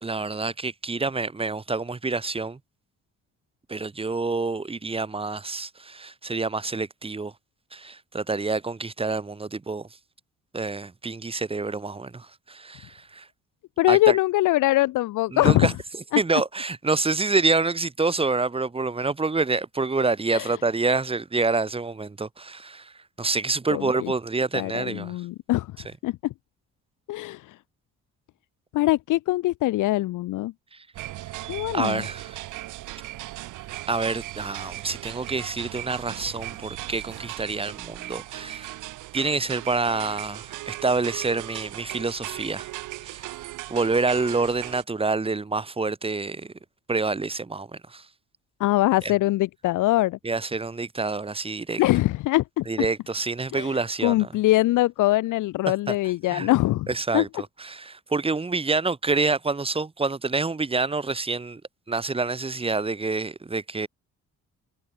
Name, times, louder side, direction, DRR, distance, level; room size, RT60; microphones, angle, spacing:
voice 1, 0.0-2.6 3.7-7.3 7.7-9.8 10.5-13.3 13.9-14.2 15.3-15.7 16.2-22.9 23.2-25.1 31.7-32.4 33.9-38.7 39.1-42.7 43.0-43.3 43.7-46.5 46.9-48.0 50.2-51.8 52.7-54.3 55.9-56.0 56.3-56.5 56.9-57.3 57.6-61.6 61.9-63.9, right 3 dB, 20° right, 1.2 m, -27 dB
voice 2, 13.8-15.7 16.1-16.2 20.3-20.5 23.7-24.1 24.5-25.7 26.0-26.3 27.1-27.5 28.7-30.5 31.5-32.0 48.6-50.2 51.8-52.6 53.5-56.9 57.1-57.2, left 17 dB, 85° left, 1.1 m, -23 dB
sound 1, 30.9-44.8, right 17 dB, 90° right, 1.2 m, -37 dB
cardioid pair, 90°, 30 cm